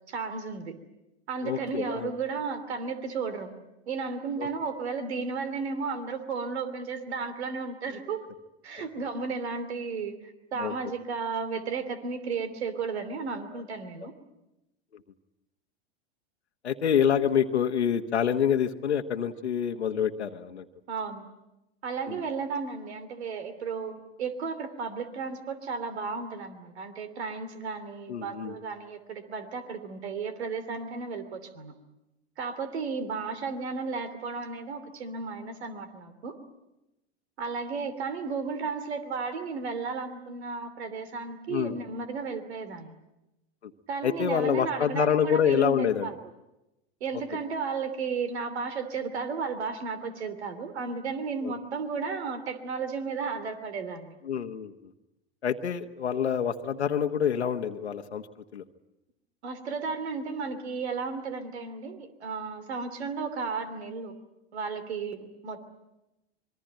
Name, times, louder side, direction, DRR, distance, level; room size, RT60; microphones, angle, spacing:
voice 1, 0.1-0.7 1.3-3.5 3.9-8.2 8.6-14.1 20.9-21.3 21.8-31.7 32.4-36.4 37.4-43.0 43.9-46.2 47.0-54.1 59.4-64.1 64.5-65.6, right 5 dB, 75° right, 12 dB, 3.0 m, -34 dB
voice 2, 1.4-2.1 4.4-4.5 10.6-10.7 16.6-20.6 22.1-22.2 28.1-28.6 41.5-41.8 44.0-46.1 51.4-51.5 54.2-54.7 55.4-58.2 58.5-58.6, left 8 dB, 90° left, 5 dB, 1.3 m, -27 dB
26.0 x 23.0 x 9.0 m, 0.95 s
hypercardioid pair, 95°, 33 cm